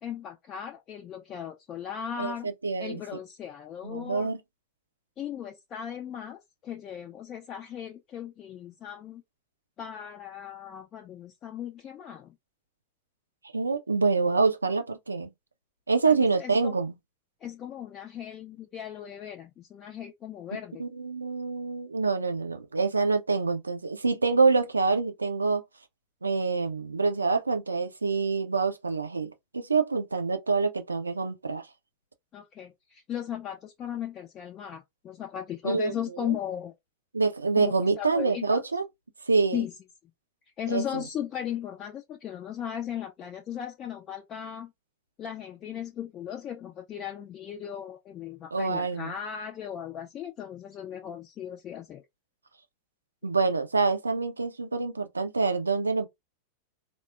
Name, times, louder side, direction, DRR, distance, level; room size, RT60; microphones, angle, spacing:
voice 1, 0.0-2.5 2.8-4.3 5.2-9.2 9.8-12.3 16.0-16.7 17.4-20.8 32.3-36.7 37.6-38.6 39.5-39.7 40.6-44.7 45.2-52.0, left 9 dB, 30° left, 0.5 m, -37 dB
voice 2, 2.2-3.0 3.8-4.4 13.5-15.3 15.9-17.0 20.8-25.6 26.2-31.6 35.6-36.3 37.1-38.8 39.3-39.6 40.7-41.0 48.5-49.1 53.2-56.1, right 4 dB, 80° right, 0.5 m, -26 dB
3.6 x 2.0 x 2.4 m
figure-of-eight pair, 90°, 0 cm